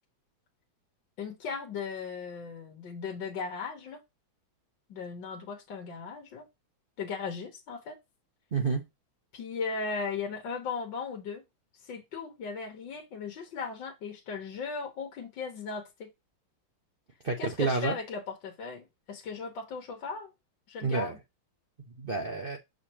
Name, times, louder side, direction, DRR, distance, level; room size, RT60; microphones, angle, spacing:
voice 1, 1.2-4.0 4.9-6.5 7.0-8.0 9.3-11.4 11.8-16.1 17.4-20.3 20.7-21.2, left 5 dB, 65° left, 1.8 m, -37 dB
voice 2, 8.5-8.9 17.2-18.0 20.8-21.1 22.0-22.6, right 4 dB, 55° right, 0.5 m, -29 dB
6.5 x 5.2 x 2.9 m
omnidirectional pair, 2.3 m